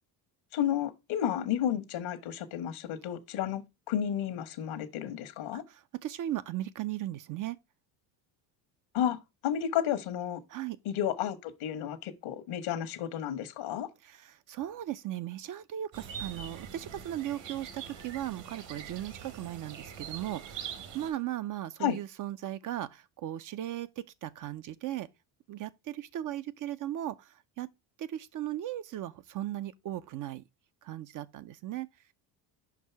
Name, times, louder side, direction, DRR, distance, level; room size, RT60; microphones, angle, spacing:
voice 1, 0.5-5.6 8.9-10.4 10.8-13.9 21.8-22.0, left 10 dB, 75° left, 1.2 m, -32 dB
voice 2, 5.5-7.6 10.5-10.8 14.0-25.1 25.5-27.7 28.0-30.4 30.8-31.9, right 13 dB, 45° right, 0.4 m, -37 dB
sound 1, 15.9-21.1, right 7 dB, 65° right, 1.4 m, -43 dB
5.4 x 4.7 x 4.5 m
supercardioid pair, 90°, 48 cm